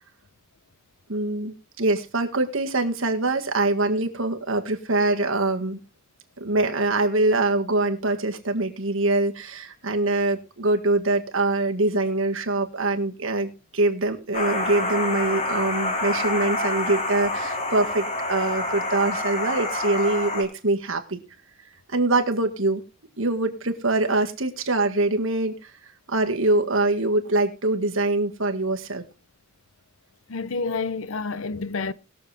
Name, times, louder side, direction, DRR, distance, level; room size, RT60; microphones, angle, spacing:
voice 1, 1.1-5.8 6.4-21.2 21.9-22.8 23.2-25.7 26.1-29.0, right 2 dB, 65° right, 1.8 m, -24 dB
sound 1, 14.3-20.4, left 2 dB, 35° left, 2.4 m, -27 dB
voice 2, 30.3-31.9, left 4 dB, 70° left, 0.6 m, -29 dB
20.5 x 7.1 x 3.4 m
head